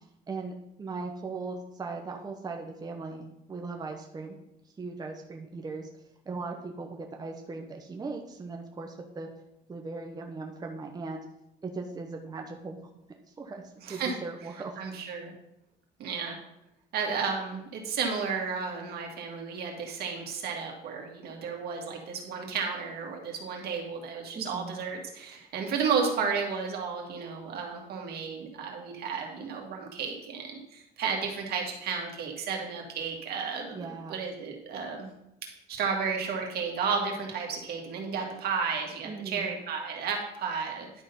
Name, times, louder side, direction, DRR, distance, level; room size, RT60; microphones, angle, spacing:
voice 1, 0.3-4.4 4.8-5.9 6.3-9.3 9.7-11.2 11.6-12.8 13.4-13.6 13.9-14.8 24.3-24.7 33.7-34.2 39.0-39.5, right 3 dB, 25° right, 2 dB, 0.9 m, -38 dB
voice 2, 13.8-14.1 14.8-15.3 16.0-16.4 16.9-35.1 35.7-41.0, right 5 dB, 70° right, 1 dB, 2.0 m, -33 dB
11.0 x 3.8 x 5.4 m, 0.83 s
cardioid pair, 110°, 17 cm